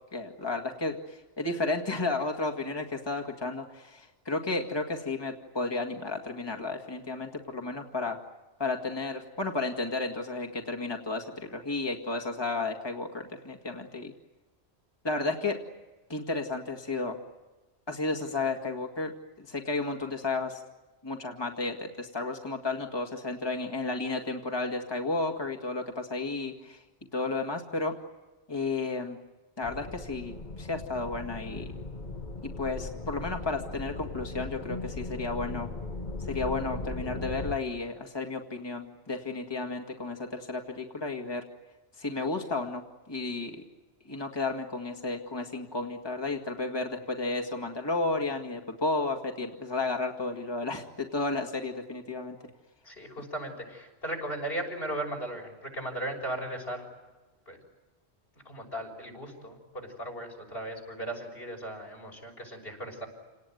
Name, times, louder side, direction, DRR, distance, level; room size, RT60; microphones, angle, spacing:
voice 1, 0.1-8.2 8.6-14.1 15.0-15.6 16.1-17.2 17.9-19.1 19.4-20.6 21.0-26.8 27.1-27.9 28.5-29.2 29.6-31.7 32.6-35.7 36.3-41.4 42.0-42.8 43.1-43.6 44.1-52.4, left 3 dB, 25° left, 3 dB, 2.0 m, -32 dB
sound 1, 29.6-37.6, left 3 dB, 45° left, 1.4 m, -38 dB
voice 2, 52.8-56.9 57.5-57.6 58.4-63.1, right 1 dB, 65° left, 1 dB, 6.7 m, -37 dB
29.0 x 19.0 x 9.3 m, 1.2 s
omnidirectional pair, 1.1 m